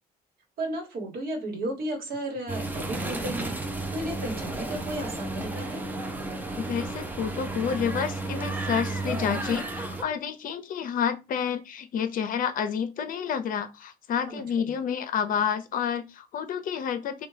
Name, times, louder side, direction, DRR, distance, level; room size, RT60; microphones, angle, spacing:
voice 1, 0.6-3.5 3.9-5.8 14.3-14.7, right 1 dB, 65° right, 1.2 m, -34 dB
sound 1, 2.5-10.0, right 2 dB, 10° right, 0.5 m, -33 dB
voice 2, 6.6-17.3, left 7 dB, 55° left, 0.6 m, -29 dB
3.4 x 2.3 x 3.2 m
cardioid pair, 110°, 17 cm